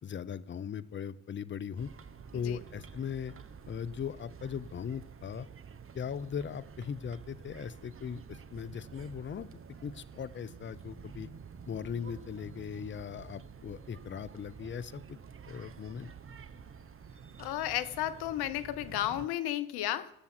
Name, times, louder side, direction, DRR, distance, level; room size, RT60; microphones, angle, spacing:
voice 1, 0.0-1.9 2.3-3.3 3.7-5.5 5.9-9.5 9.8-11.3 11.7-15.2 15.5-16.1, left 7 dB, 30° left, 16 dB, 0.7 m, -39 dB
sound 1, 1.8-19.3, right 6 dB, 30° right, 1.0 m, -50 dB
voice 2, 17.4-20.1, left 13 dB, 65° left, 14 dB, 1.0 m, -33 dB
16.5 x 7.1 x 4.4 m, 0.84 s
hypercardioid pair, 65°, 41 cm